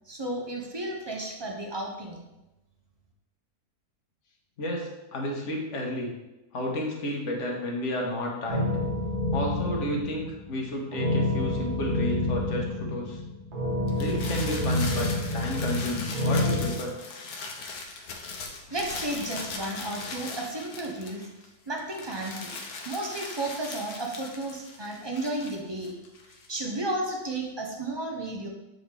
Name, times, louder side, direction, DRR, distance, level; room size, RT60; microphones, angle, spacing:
voice 1, 0.1-2.2 18.7-21.3 21.7-22.6 22.8-25.9 26.5-28.5, right 1 dB, 30° right, 0 dB, 0.4 m, -33 dB
voice 2, 4.6-6.1 6.5-8.7 9.3-13.2 14.0-16.9, left 1 dB, 50° left, 0 dB, 1.3 m, -32 dB
sound 1, 8.5-16.7, left 1 dB, 85° right, 1.8 m, -28 dB
sound 2, 13.9-21.5 21.8-26.6, left 3 dB, 70° left, 1.3 m, -39 dB
7.5 x 3.9 x 3.4 m, 0.97 s
omnidirectional pair, 1.7 m